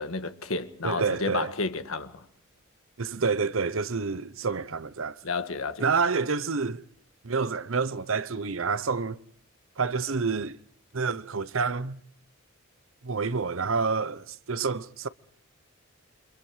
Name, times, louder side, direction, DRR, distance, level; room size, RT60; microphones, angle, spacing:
voice 1, 0.0-2.2 5.2-5.8, left 3 dB, 85° left, 1.6 m, -31 dB
voice 2, 0.8-1.5 3.0-5.2 5.8-6.8 7.2-9.2 9.8-10.6 10.9-12.0 13.0-15.1, right 4 dB, 75° right, 0.9 m, -28 dB
29.0 x 25.0 x 4.9 m
head